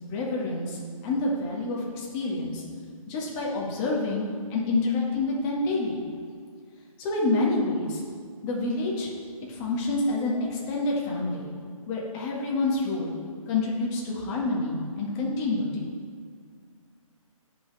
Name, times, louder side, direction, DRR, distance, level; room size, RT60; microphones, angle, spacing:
voice 1, 0.0-2.6 3.1-4.2 4.5-6.0 7.0-8.0 8.4-9.1 9.5-11.5 11.9-13.1 13.5-15.9, left 2 dB, 20° left, -3 dB, 1.8 m, -28 dB
16.5 x 5.8 x 3.4 m, 2.1 s
hypercardioid pair, 150°, 18 cm